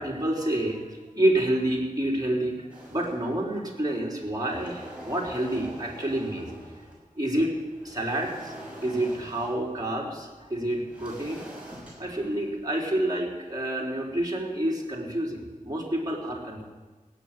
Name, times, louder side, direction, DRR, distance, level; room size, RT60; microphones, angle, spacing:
voice 1, 0.0-6.5 7.1-7.5 7.8-8.5 8.8-11.5 12.0-16.6, right 1 dB, 25° right, -3 dB, 3.9 m, -28 dB
sound 1, 2.7-3.7 4.1-7.1 7.5-13.1, right 1 dB, 10° right, 6.0 m, -45 dB
17.5 x 7.5 x 9.1 m, 1.3 s
wide cardioid pair, 50°, 14 cm